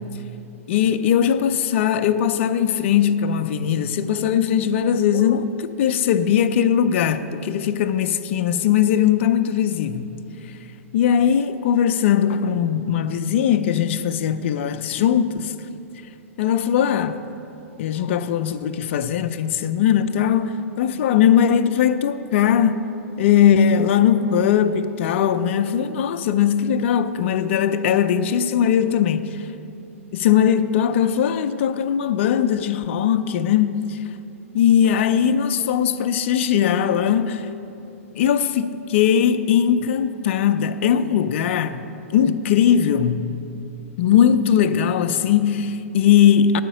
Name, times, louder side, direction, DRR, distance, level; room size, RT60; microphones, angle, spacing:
voice 1, 0.7-10.1 10.9-15.5 16.4-17.2 17.8-22.9 23.2-29.4 30.1-34.0 34.5-37.5 38.1-41.8 42.1-43.3 44.0-46.6, left 9 dB, 55° left, 0.5 m, -19 dB
9.4 x 5.0 x 7.7 m
hypercardioid pair, 115°, 8 cm